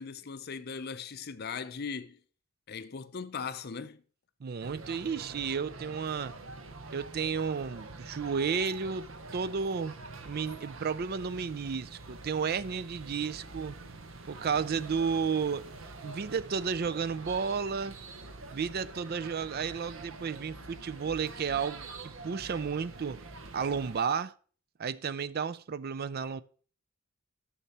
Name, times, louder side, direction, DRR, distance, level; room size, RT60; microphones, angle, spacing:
voice 1, 0.0-2.2 2.7-4.0, left 5 dB, 50° left, 0.6 m, -39 dB
voice 2, 4.4-6.3 6.9-10.0 10.2-13.8 14.3-15.7 16.0-18.0 18.5-23.2 23.5-24.3 24.8-26.4, right 6 dB, 50° right, 0.4 m, -32 dB
sound 1, 4.6-24.0, right 3 dB, 70° right, 1.0 m, -46 dB
10.0 x 7.2 x 4.2 m
head